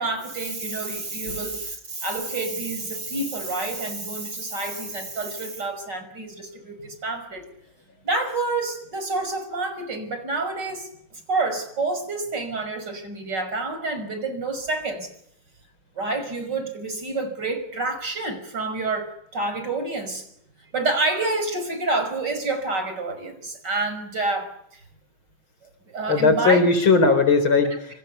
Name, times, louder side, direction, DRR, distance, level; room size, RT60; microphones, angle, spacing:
voice 1, 0.0-7.4 8.0-10.9 11.3-15.1 15.9-20.3 20.7-24.8 25.9-26.7, right 3 dB, 55° right, 8 dB, 6.1 m, -28 dB
voice 2, 26.1-28.0, left 4 dB, 80° left, 9 dB, 5.1 m, -18 dB
29.0 x 26.0 x 7.0 m, 0.73 s
omnidirectional pair, 2.2 m